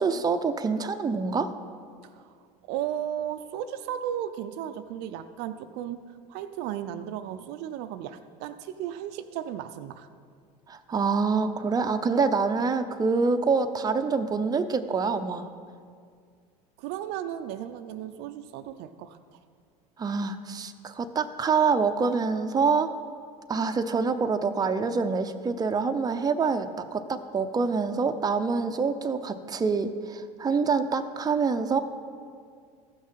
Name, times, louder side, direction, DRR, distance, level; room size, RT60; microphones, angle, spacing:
voice 1, 0.0-1.5 10.7-15.5 20.0-22.9 23.5-31.8, right 5 dB, 20° right, 7 dB, 0.6 m, -26 dB
voice 2, 2.0-2.3 2.7-10.1 16.8-19.4, right 10 dB, 60° right, 9 dB, 0.5 m, -35 dB
14.5 x 6.2 x 5.7 m, 2.2 s
hypercardioid pair, 85°, 20 cm